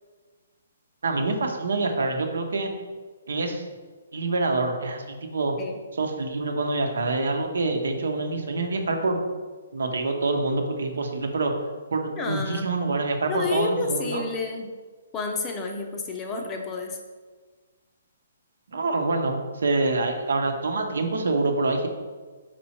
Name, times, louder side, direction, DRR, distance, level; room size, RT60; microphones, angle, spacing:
voice 1, 1.0-2.7 3.3-3.6 4.1-5.5 5.9-9.2 9.7-11.5 11.9-14.2 18.7-21.9, right 3 dB, 90° right, 4 dB, 1.0 m, -26 dB
voice 2, 12.2-12.7 13.3-14.7 15.1-17.0, left 4 dB, 15° left, 3 dB, 0.5 m, -30 dB
5.3 x 4.4 x 4.4 m, 1.4 s
hypercardioid pair, 170°, 0 cm